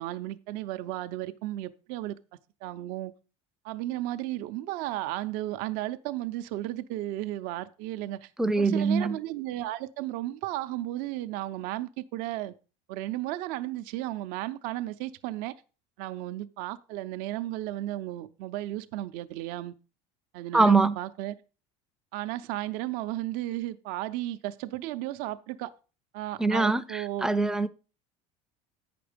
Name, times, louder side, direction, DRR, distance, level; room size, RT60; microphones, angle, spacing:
voice 1, 0.0-2.2 2.6-3.1 3.6-8.3 8.6-12.5 12.9-15.5 16.0-19.7 20.3-21.4 22.1-25.7 26.1-27.3, right 15 dB, 65° right, 0.6 m, -34 dB
voice 2, 8.4-9.2 20.5-20.9 26.4-27.7, right 3 dB, 5° right, 0.4 m, -23 dB
8.7 x 6.0 x 5.1 m
supercardioid pair, 125°, 16 cm